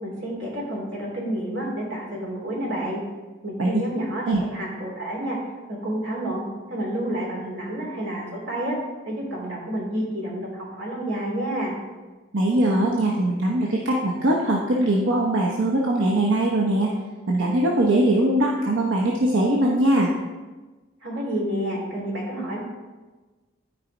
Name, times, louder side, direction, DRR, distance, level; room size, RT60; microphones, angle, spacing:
voice 1, 0.0-3.0 3.4-5.4 5.7-6.4 6.7-8.8 9.0-11.8 21.0-22.6, right 1 dB, 60° right, -3 dB, 2.8 m, -29 dB
voice 2, 12.3-16.9 17.3-20.1, right 1 dB, 80° right, -2 dB, 1.0 m, -21 dB
13.0 x 4.9 x 4.0 m, 1.3 s
head